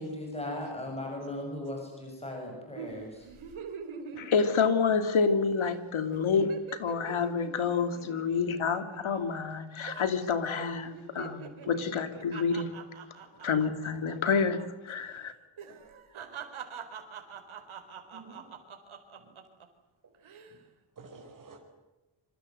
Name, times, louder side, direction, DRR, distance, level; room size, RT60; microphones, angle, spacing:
voice 1, 0.0-3.3, left 1 dB, 10° left, 1 dB, 7.8 m, -37 dB
sound 1, 2.8-5.3 5.6-5.8 6.1-9.6 9.9-10.3 10.6-14.7 14.9-15.1 15.6-19.7 20.1-20.6, right 6 dB, 80° right, 4.5 m, -45 dB
voice 2, 4.2-12.8 13.4-15.3, left 5 dB, 75° left, 8 dB, 3.0 m, -28 dB
voice 3, 18.1-18.6 19.2-19.3 20.0-20.1 20.5-20.6 20.9-21.6, right 4 dB, 40° right, 1 dB, 5.0 m, -52 dB
27.0 x 25.5 x 8.0 m, 1.1 s
wide cardioid pair, 175°, 48 cm